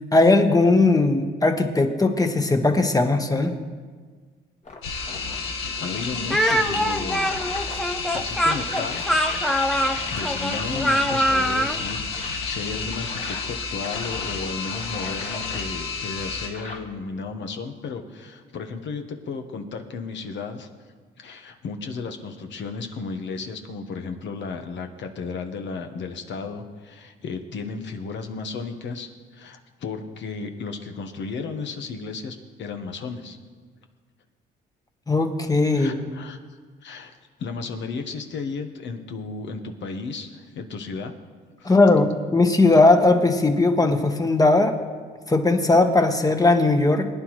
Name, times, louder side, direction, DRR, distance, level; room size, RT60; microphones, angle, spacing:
voice 1, 0.1-3.5 35.1-36.1 41.6-44.8 45.3-47.1, left 2 dB, 20° left, 5 dB, 1.2 m, -18 dB
sound 1, 4.6-16.8, left 3 dB, 35° left, 1.8 m, -39 dB
sound 2, 4.8-16.5, left 4 dB, 85° left, 1.7 m, -31 dB
voice 2, 5.8-7.5 8.1-9.1 10.1-20.7 21.2-33.4 35.7-36.4 36.8-41.1 41.6-41.8, left 4 dB, 70° left, 5 dB, 1.2 m, -34 dB
Speech, 6.3-11.8, equal, ahead, 0.6 m, -23 dB
22.0 x 9.8 x 3.2 m, 1.5 s
cardioid pair, 90°, 20 cm